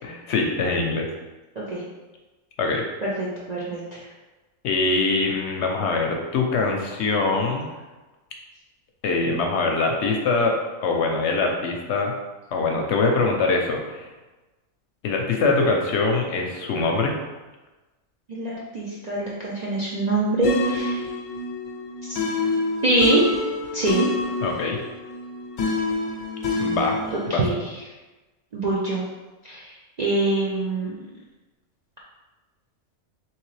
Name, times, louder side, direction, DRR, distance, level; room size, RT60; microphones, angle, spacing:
voice 1, 0.0-1.1 2.6-2.8 4.6-7.6 9.0-12.1 12.5-14.1 15.0-17.2 24.4-24.8 26.6-27.0 27.3-27.4, left 3 dB, 65° left, 1 dB, 0.8 m, -23 dB
voice 2, 3.0-4.1 18.3-21.0 22.1-22.2 22.8-23.2 23.7-24.1 27.1-27.6 28.5-29.0 29.4-29.7 30.0-31.0, right 2 dB, 55° right, -6 dB, 0.4 m, -24 dB
sound 1, 20.4-27.3, left 3 dB, 90° left, 1.0 m, -27 dB
3.6 x 3.1 x 3.1 m, 1.2 s
omnidirectional pair, 1.4 m